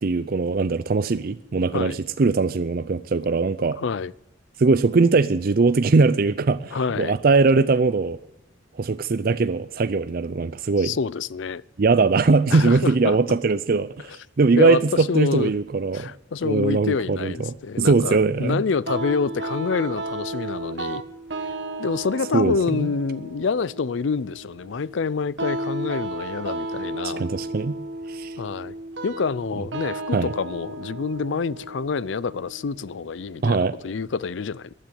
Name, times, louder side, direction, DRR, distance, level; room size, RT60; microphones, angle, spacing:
voice 1, 0.0-3.8 4.6-8.2 8.8-10.9 11.8-16.1 16.4-18.6 22.3-22.9 27.0-27.8 28.1-28.4 30.1-30.3 33.4-33.7, right 4 dB, 50° right, 0.5 m, -21 dB
voice 2, 3.8-4.1 6.7-7.2 10.8-11.6 12.5-13.2 14.1-14.2 14.6-15.5 15.9-21.0 21.8-27.3 28.4-28.7 29.0-34.7, left 5 dB, 75° left, 0.5 m, -27 dB
sound 1, 18.9-33.8, right 2 dB, 70° right, 1.6 m, -34 dB
14.5 x 9.9 x 9.2 m
head